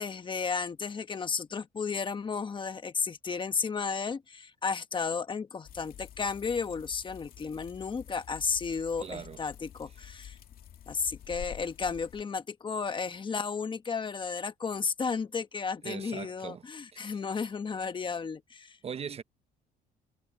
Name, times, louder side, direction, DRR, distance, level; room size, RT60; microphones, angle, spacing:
voice 1, 0.0-10.4 10.9-18.8, left 5 dB, 30° left, 1.2 m, -33 dB
sound 1, 5.7-12.2, left 10 dB, 60° left, 2.7 m, -48 dB
voice 2, 9.0-9.4 10.0-10.1 15.8-16.6 16.9-17.2 18.8-19.2, right 7 dB, 35° right, 0.8 m, -40 dB
cardioid pair, 110°, 17 cm